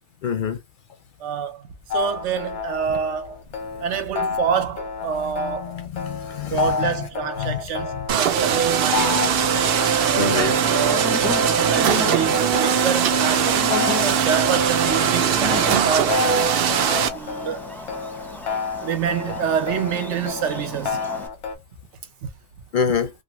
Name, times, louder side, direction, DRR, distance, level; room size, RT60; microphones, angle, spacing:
voice 1, 0.2-0.6 5.7-6.9 7.4-7.5 10.1-10.6 22.7-23.1, left 6 dB, 55° left, 0.6 m, -25 dB
voice 2, 1.2-1.7 1.9-3.4 3.8-5.8 6.5-9.3 10.0-13.6 14.0-16.3 17.1-17.6 18.8-21.0 22.2-22.3, right 7 dB, 85° right, 1.0 m, -27 dB
sound 1, 1.9-21.6, left 5 dB, 90° left, 1.1 m, -30 dB
sound 2, 8.1-17.1, right 8 dB, 65° right, 0.7 m, -20 dB
Buzz, 9.0-21.3, left 2 dB, ahead, 0.6 m, -34 dB
2.6 x 2.6 x 2.8 m
omnidirectional pair, 1.2 m